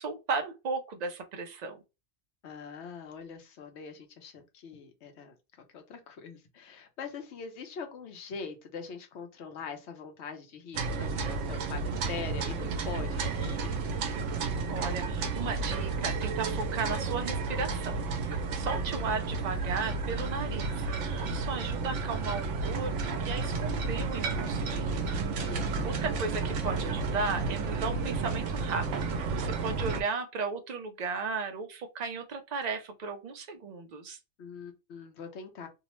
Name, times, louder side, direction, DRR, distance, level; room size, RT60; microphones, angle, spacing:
voice 1, 0.0-1.8 14.7-18.0 18.5-20.8 21.2-25.1 25.8-34.2, right 4 dB, 50° right, 0.5 m, -35 dB
voice 2, 2.4-5.4 5.7-13.9 25.5-25.9 29.6-29.9 34.4-35.7, left 5 dB, 70° left, 1.0 m, -43 dB
sound 1, 10.7-30.0, right 4 dB, 85° right, 0.9 m, -32 dB
2.7 x 2.0 x 2.9 m
omnidirectional pair, 1.2 m